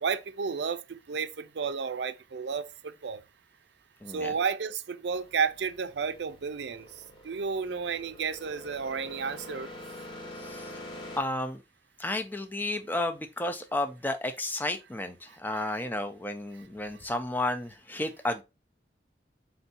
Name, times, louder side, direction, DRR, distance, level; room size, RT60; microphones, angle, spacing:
voice 1, 0.0-3.2 4.1-6.9 7.2-9.7, right 5 dB, 70° right, 0.5 m, -32 dB
voice 2, 4.0-4.4 10.4-10.7 11.2-11.6 12.0-18.4, left 1 dB, 10° left, 0.5 m, -32 dB
sound 1, 5.0-11.2, left 1 dB, 25° left, 0.9 m, -46 dB
4.4 x 2.7 x 4.0 m
head